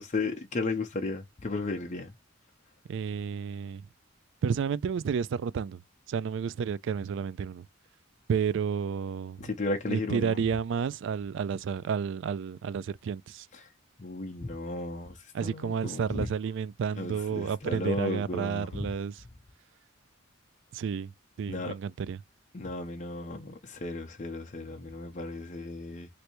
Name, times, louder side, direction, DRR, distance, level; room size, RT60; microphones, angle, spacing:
voice 1, 0.0-2.1 9.4-10.4 13.5-13.7 14.0-16.3 17.0-18.9 21.5-21.7 22.5-26.1, left 2 dB, 35° left, 0.6 m, -34 dB
voice 2, 2.9-3.8 4.4-5.8 6.1-7.7 8.3-9.5 9.9-13.5 15.3-19.2 20.7-21.1 21.4-22.2, right 6 dB, 65° right, 0.3 m, -31 dB
3.3 x 2.6 x 2.9 m
head